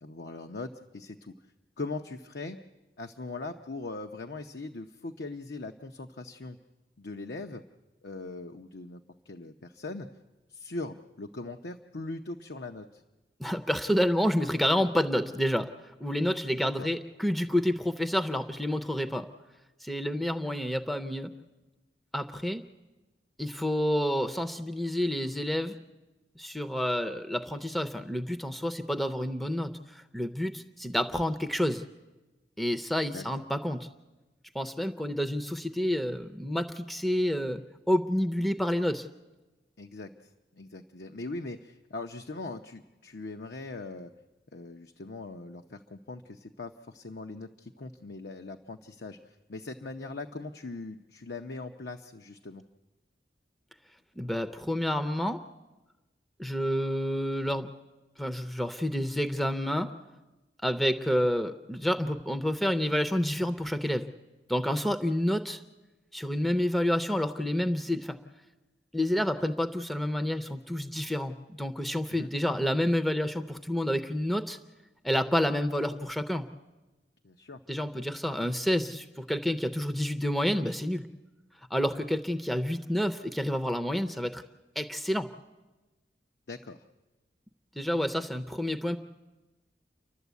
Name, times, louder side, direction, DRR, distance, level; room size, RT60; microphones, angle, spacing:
voice 1, 0.0-1.3 1.8-2.6 3.0-6.6 7.0-7.6 8.0-10.1 10.5-13.0 16.6-16.9 33.1-33.4 39.8-44.1 44.5-52.6 72.1-72.3 77.2-77.6 86.5-86.8, left 3 dB, 70° left, 5 dB, 0.8 m, -40 dB
voice 2, 13.4-15.7 16.0-19.3 19.8-21.3 22.1-22.6 23.4-25.8 26.4-31.8 32.6-33.9 34.5-37.6 37.9-39.1 54.2-55.4 56.4-57.7 58.2-59.9 60.6-64.1 64.5-65.6 66.1-68.2 68.9-74.6 75.0-76.5 77.7-81.1 81.7-84.4 84.8-85.3 87.8-89.0, equal, ahead, 7 dB, 0.6 m, -29 dB
29.5 x 12.0 x 8.2 m, 1.1 s
head